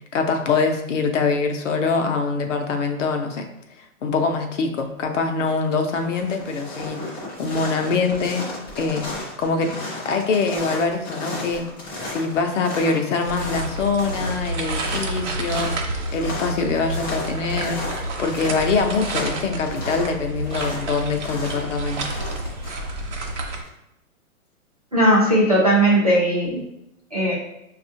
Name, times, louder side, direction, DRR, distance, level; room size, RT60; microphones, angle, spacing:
voice 1, 0.1-3.5 4.0-7.1 7.4-8.5 8.8-9.7 10.0-11.6 12.1-22.0, left 4 dB, 60° left, 4 dB, 0.7 m, -24 dB
sound 1, 5.4-5.5 5.8-23.7, left 1 dB, 15° left, 0.6 m, -34 dB
sound 2, 13.2-23.6, right 2 dB, 55° right, 0.8 m, -30 dB
voice 2, 24.9-26.6 27.1-27.3, right 1 dB, 30° right, -6 dB, 0.4 m, -17 dB
5.3 x 2.4 x 2.6 m, 0.84 s
hypercardioid pair, 165°, 43 cm